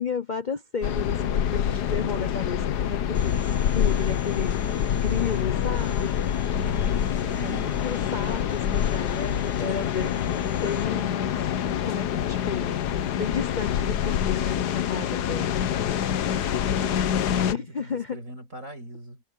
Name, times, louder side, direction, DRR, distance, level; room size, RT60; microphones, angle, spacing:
voice 1, 0.0-4.6 4.9-6.2 6.6-6.7 7.3-11.3 11.8-12.7 13.2-16.0 17.5-18.2, left 6 dB, 90° left, 0.4 m, -33 dB
sound 1, 0.8-17.5, left 9 dB, 65° left, 1.4 m, -26 dB
Domestic sounds home sounds, 3.1-10.8, left 2 dB, 15° left, 1.2 m, -47 dB
voice 2, 6.5-7.8 16.6-19.2, right 1 dB, 45° right, 7.5 m, -40 dB
omnidirectional pair, 2.0 m